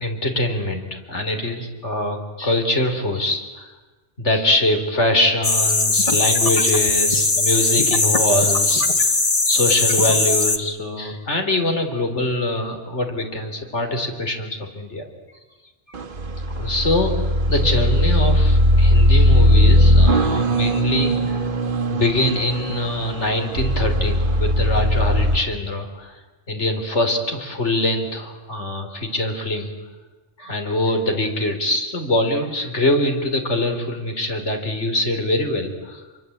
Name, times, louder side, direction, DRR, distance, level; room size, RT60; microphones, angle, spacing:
voice 1, 0.0-3.7 4.2-9.2 9.5-15.0 16.5-21.4 21.9-26.2 26.5-29.7 30.4-36.0, left 1 dB, 85° left, 5 dB, 3.9 m, -23 dB
sound 1, 5.4-10.6, left 3 dB, 30° left, 1.5 m, -19 dB
sound 2, 15.9-25.4, equal, 50° right, 1.4 m, -18 dB
26.5 x 24.0 x 8.6 m, 1.2 s
omnidirectional pair, 1.2 m